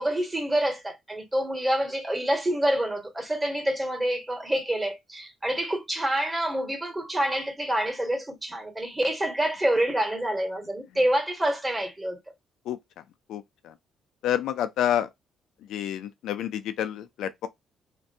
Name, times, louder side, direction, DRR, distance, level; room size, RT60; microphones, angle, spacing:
voice 1, 0.0-12.2, right 1 dB, 15° right, 1.3 m, -27 dB
voice 2, 13.3-13.7 14.2-15.1 15.7-17.5, left 10 dB, 80° left, 0.3 m, -28 dB
2.5 x 2.2 x 2.6 m
cardioid pair, 90°, 0 cm